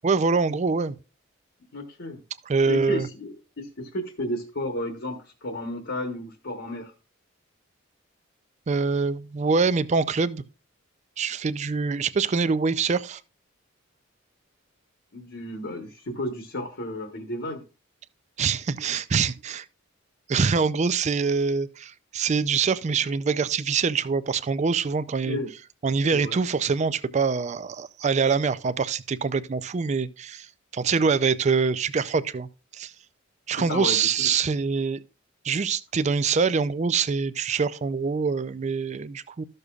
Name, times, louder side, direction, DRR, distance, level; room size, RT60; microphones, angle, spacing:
voice 1, 0.0-1.0 2.5-3.1 8.7-10.4 11.2-13.2 18.4-19.7 20.3-25.4 25.8-30.5 30.7-32.9 33.5-35.0 35.4-39.4, right 5 dB, 35° right, 0.4 m, -24 dB
voice 2, 1.7-2.2 2.7-6.9 15.1-17.6 25.2-25.5 26.1-26.4 33.6-34.1, left 1 dB, 60° left, 1.1 m, -32 dB
13.5 x 6.6 x 2.4 m
head